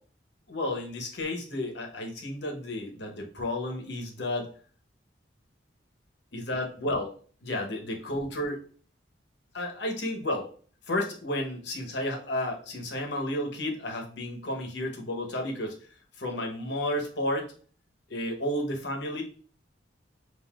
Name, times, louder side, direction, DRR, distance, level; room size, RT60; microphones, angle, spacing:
voice 1, 0.5-4.5 6.3-7.1 7.4-8.6 9.5-10.5 10.9-15.8 16.2-17.5 18.1-19.2, left 1 dB, 65° left, 2 dB, 1.0 m, -32 dB
5.6 x 2.7 x 2.4 m, 0.43 s
head